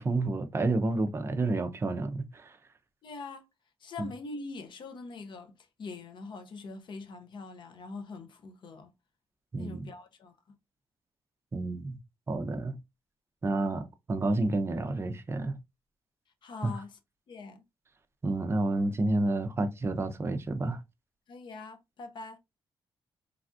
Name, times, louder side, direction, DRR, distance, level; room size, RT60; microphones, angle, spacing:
voice 1, 0.0-2.6 4.0-4.1 9.5-9.9 11.5-12.0 12.3-12.8 13.4-15.6 16.6-16.7 18.2-20.8, right 2 dB, 25° right, 0.5 m, -30 dB
voice 2, 3.0-3.5 3.8-8.9 9.6-10.4 16.4-17.0 17.3-17.6 21.3-22.4, left 3 dB, 55° left, 0.6 m, -43 dB
3.3 x 2.3 x 2.5 m
cardioid pair, 115°, 10 cm